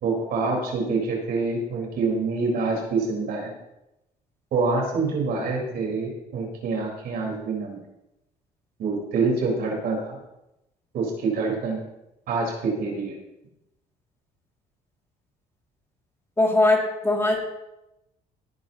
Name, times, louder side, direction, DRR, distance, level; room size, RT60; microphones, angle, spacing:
voice 1, 0.0-3.5 4.5-7.8 8.8-10.2 10.9-11.8 12.3-13.1, right 4 dB, 65° right, 0 dB, 4.4 m, -26 dB
voice 2, 16.4-17.4, left 2 dB, 15° left, 0 dB, 2.5 m, -20 dB
18.0 x 9.9 x 2.9 m, 0.90 s
cardioid pair, 110°, 17 cm